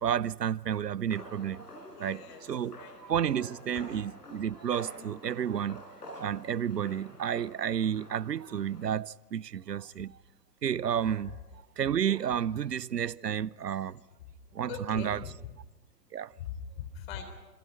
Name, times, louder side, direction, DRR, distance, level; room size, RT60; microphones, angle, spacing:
voice 1, 0.0-1.7 2.0-5.8 6.2-10.2 10.6-11.4 11.8-14.0 14.5-15.2 16.1-16.3, right 9 dB, 75° right, 0.7 m, -31 dB
sound 1, 1.1-8.9, equal, 75° left, 5.1 m, -49 dB
voice 2, 1.9-2.4 2.8-2.9 14.7-15.3 16.4-17.2, left 8 dB, 35° left, 3.7 m, -41 dB
sound 2, 3.3-4.9 5.3-6.0 10.9-12.7, right 6 dB, 25° right, 3.4 m, -54 dB
28.0 x 27.0 x 5.6 m
figure-of-eight pair, 120°, 49 cm